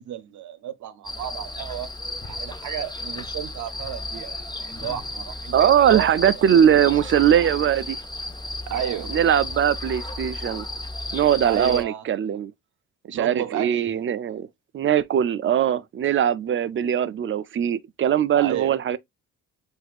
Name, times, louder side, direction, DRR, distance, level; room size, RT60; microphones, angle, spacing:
voice 1, 0.0-1.9 2.2-6.1 8.7-9.2 11.4-12.0 13.1-13.8 18.4-18.8, right 11 dB, 70° right, 0.8 m, -32 dB
sound 1, 1.0-11.8, left 2 dB, 15° left, 0.7 m, -34 dB
voice 2, 5.5-8.0 9.1-10.7 11.1-12.5 13.1-14.5 14.7-19.0, right 9 dB, 40° right, 0.5 m, -21 dB
7.6 x 2.7 x 2.4 m
cardioid pair, 90°, 30 cm